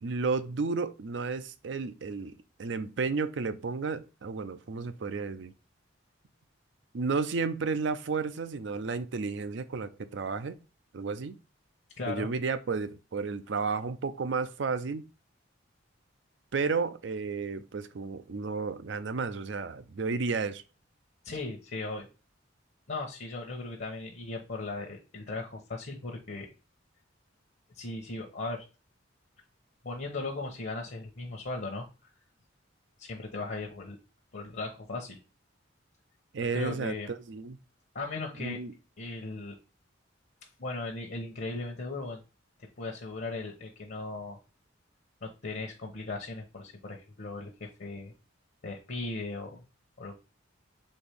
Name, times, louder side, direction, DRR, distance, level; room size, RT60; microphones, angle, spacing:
voice 1, 0.0-5.5 6.9-10.6 10.9-11.4 12.1-15.0 16.5-20.6 36.3-36.9 37.3-37.6 38.4-38.7, right 4 dB, 65° right, 0.5 m, -32 dB
voice 2, 12.0-12.3 21.2-22.1 22.9-26.5 27.7-28.6 29.8-31.9 33.0-34.0 34.3-35.2 36.4-37.1 37.9-38.6 39.0-39.6 40.6-42.2 42.6-44.4 45.2-48.1 48.6-49.6 50.0-50.2, left 3 dB, 55° left, 0.9 m, -37 dB
4.3 x 3.5 x 3.4 m
head